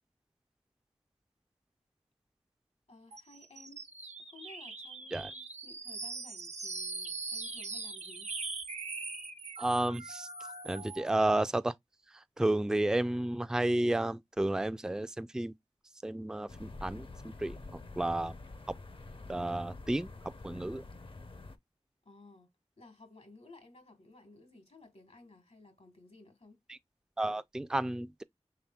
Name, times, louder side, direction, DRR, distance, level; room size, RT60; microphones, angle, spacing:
voice 1, 2.9-3.9 4.3-8.3 22.0-22.5 22.8-26.6, left 2 dB, 70° left, 1.3 m, -56 dB
sound 1, 3.1-11.1, right 3 dB, 75° right, 0.7 m, -41 dB
voice 2, 9.6-10.3 10.6-11.7 12.1-15.5 16.0-18.4 18.7-18.8 19.3-20.8 26.7-26.8 27.2-28.2, right 1 dB, 5° right, 0.3 m, -32 dB
sound 2, 16.5-21.6, left 2 dB, 50° left, 0.6 m, -47 dB
5.7 x 3.4 x 2.2 m
wide cardioid pair, 45°, 12 cm